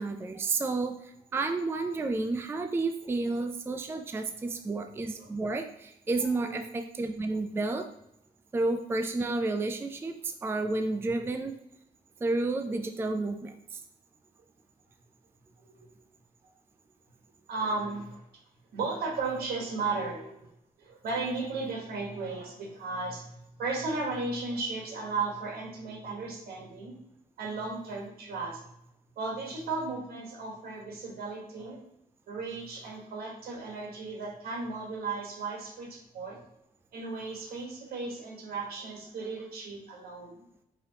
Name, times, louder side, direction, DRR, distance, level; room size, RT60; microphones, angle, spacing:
voice 1, 0.0-7.9 8.5-11.6 12.2-13.8, right 3 dB, 15° right, 6 dB, 0.3 m, -31 dB
voice 2, 17.5-18.2 18.7-20.5 20.8-27.0 27.4-28.7 29.2-31.8 32.3-36.4 36.9-40.4, right 3 dB, 80° right, 0 dB, 1.2 m, -35 dB
4.9 x 2.9 x 2.8 m, 0.80 s
cardioid pair, 100°, 16 cm